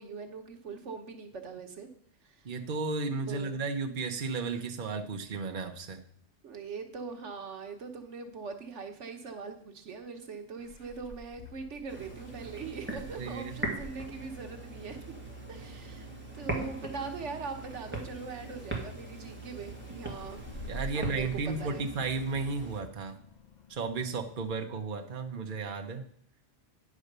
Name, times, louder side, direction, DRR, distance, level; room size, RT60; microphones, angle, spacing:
voice 1, 0.0-1.9 2.2-2.5 3.0-3.6 6.4-15.0 15.5-16.1 16.3-20.4 20.9-21.9, right 5 dB, 85° right, 6 dB, 1.4 m, -41 dB
voice 2, 2.4-6.0 13.2-13.5 20.7-23.2 23.7-26.0, right 4 dB, 45° right, 5 dB, 1.0 m, -34 dB
Meow, 10.6-24.5, equal, 40° left, 1.1 m, -50 dB
sound 1, 11.9-22.8, right 2 dB, 10° right, 1.9 m, -41 dB
10.0 x 4.9 x 6.6 m, 0.64 s
omnidirectional pair, 1.2 m